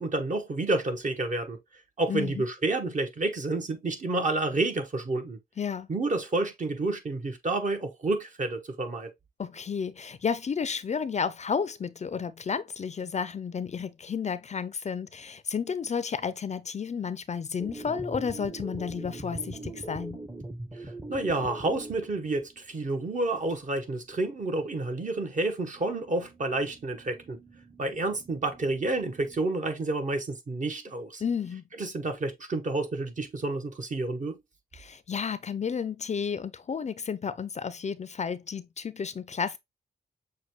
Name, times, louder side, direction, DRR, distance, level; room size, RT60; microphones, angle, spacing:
voice 1, 0.0-1.6 2.0-5.4 5.9-9.1 20.8-27.4 27.8-31.2 31.8-34.4, right 2 dB, 50° right, 1.1 m, -29 dB
voice 2, 2.1-2.4 5.6-5.9 9.4-20.2 31.2-31.6 34.7-39.6, left 6 dB, 45° left, 0.4 m, -32 dB
sound 1, 17.6-23.0 23.4-23.5 23.7-23.8 24.1-24.9 25.1-29.4, right 2 dB, 20° right, 0.7 m, -43 dB
6.5 x 2.2 x 3.0 m
cardioid pair, 70°, 17 cm